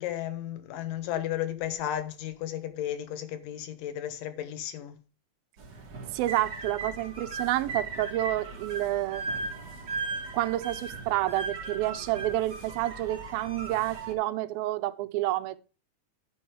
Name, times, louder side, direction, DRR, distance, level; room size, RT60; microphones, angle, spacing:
voice 1, 0.0-5.0, left 11 dB, 75° left, 2.6 m, -34 dB
sound 1, 5.6-14.1, right 3 dB, 40° right, 1.6 m, -38 dB
voice 2, 6.1-9.4 10.3-15.6, right 15 dB, 90° right, 2.5 m, -29 dB
11.5 x 5.5 x 4.9 m
omnidirectional pair, 4.2 m